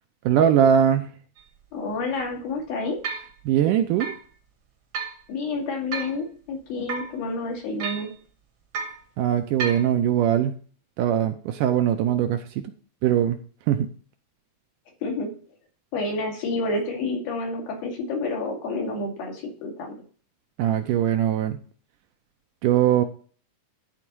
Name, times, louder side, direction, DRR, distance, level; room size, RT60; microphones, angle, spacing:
voice 1, 0.3-1.1 3.5-4.1 9.2-10.5 11.0-12.7 13.0-13.4 13.7-13.9 20.6-21.6 22.6-23.0, right 10 dB, 80° right, 8 dB, 2.0 m, -21 dB
sound 1, 1.4-1.5 2.1-2.2 3.0-3.3 4.0-4.2 4.9-5.2 5.9-6.2 6.9-7.2 7.8-8.1 8.7-9.0 9.6-9.9, right 5 dB, 55° right, 1.5 m, -32 dB
voice 2, 1.7-3.0 5.3-8.1 15.0-15.3 15.9-20.0, left 3 dB, 80° left, 0 dB, 4.4 m, -29 dB
12.0 x 4.1 x 6.1 m, 0.42 s
omnidirectional pair, 4.1 m